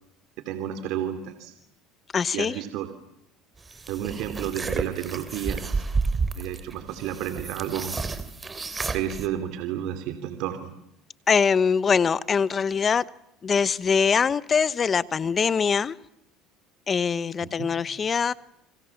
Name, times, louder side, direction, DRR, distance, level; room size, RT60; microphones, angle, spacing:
voice 1, 0.4-1.5 2.3-2.9 3.9-5.8 6.4-8.0 8.9-10.7 17.4-17.7, right 10 dB, 70° right, 8 dB, 3.0 m, -31 dB
voice 2, 2.1-2.5 11.3-13.1 13.4-15.9 16.9-18.3, left 6 dB, 30° left, 18 dB, 1.0 m, -23 dB
sound 1, 3.7-9.3, right 4 dB, 20° right, 3.2 m, -31 dB
29.0 x 26.0 x 7.2 m, 0.79 s
supercardioid pair, 105°, 0 cm